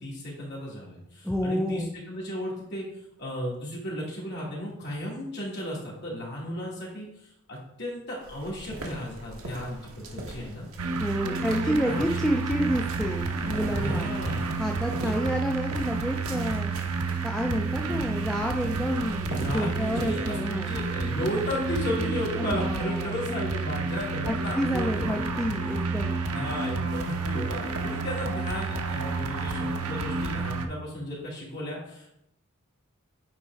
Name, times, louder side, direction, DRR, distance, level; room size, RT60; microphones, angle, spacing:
voice 1, 0.0-2.8 3.2-10.7 11.2-12.1 13.7-14.6 15.0-15.2 19.3-25.5 26.3-32.1, equal, 50° left, -4 dB, 2.4 m, -34 dB
voice 2, 1.2-1.9 11.0-14.1 14.6-16.7 17.2-20.7 22.4-23.4 24.3-26.2, equal, ahead, 1 dB, 0.4 m, -29 dB
sound 1, 8.2-20.1, right 1 dB, 65° right, 1.2 m, -42 dB
sound 2, 10.8-30.7, right 3 dB, 85° right, 0.7 m, -30 dB
8.6 x 4.2 x 3.5 m, 0.79 s
head